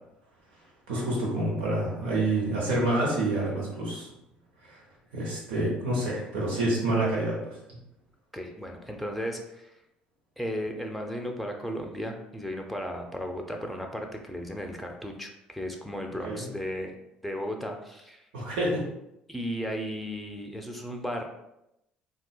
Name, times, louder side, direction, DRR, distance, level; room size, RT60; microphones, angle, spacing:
voice 1, 0.9-4.1 4.6-4.8 5.1-7.8 16.2-16.4 18.3-18.8, right 1 dB, 75° right, -4 dB, 1.0 m, -28 dB
voice 2, 8.3-9.7 10.4-17.0 17.2-18.3 19.3-21.3, equal, ahead, 2 dB, 0.5 m, -35 dB
3.7 x 2.3 x 2.2 m, 0.85 s
hypercardioid pair, 55°, 4 cm